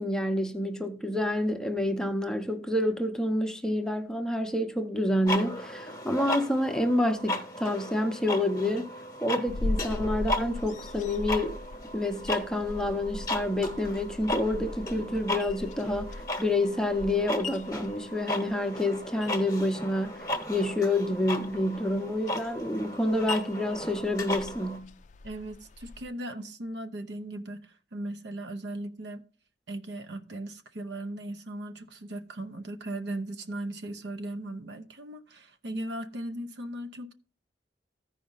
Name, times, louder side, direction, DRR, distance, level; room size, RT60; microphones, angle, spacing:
voice 1, 0.0-8.9 9.2-11.6 11.9-24.9, left 1 dB, 5° left, 0.7 m, -28 dB
sound 1, 5.3-24.8, left 1 dB, 20° left, 1.0 m, -36 dB
sound 2, 9.5-26.0, left 2 dB, 40° left, 0.4 m, -40 dB
voice 2, 25.2-29.2 29.7-37.1, right 1 dB, 65° right, 0.8 m, -38 dB
14.5 x 5.0 x 3.9 m
head